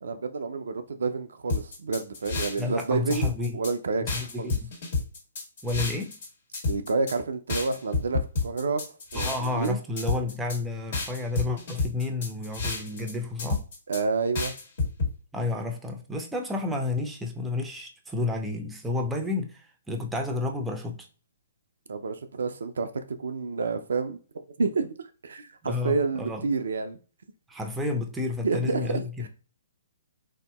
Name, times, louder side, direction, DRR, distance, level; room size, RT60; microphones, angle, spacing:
voice 1, 0.0-4.0 4.4-4.5 6.7-8.8 9.1-9.8 13.9-14.5 21.9-22.9 23.2-24.2 24.6-27.0 28.4-29.3, right 4 dB, 70° right, 0.4 m, -29 dB
sound 1, 1.5-2.8 3.1-3.7 4.1-6.3 6.5-7.2 7.5-9.7 10.0-10.6 10.9-13.1 13.4-14.0 14.4-15.1, left 3 dB, 55° left, 1.5 m, -29 dB
voice 2, 2.6-3.6 4.0-4.7 5.6-6.2 9.1-13.6 15.3-21.0 25.6-26.4 27.5-29.3, left 3 dB, 10° right, 0.5 m, -31 dB
3.7 x 2.7 x 2.2 m
figure-of-eight pair, 130°, 0 cm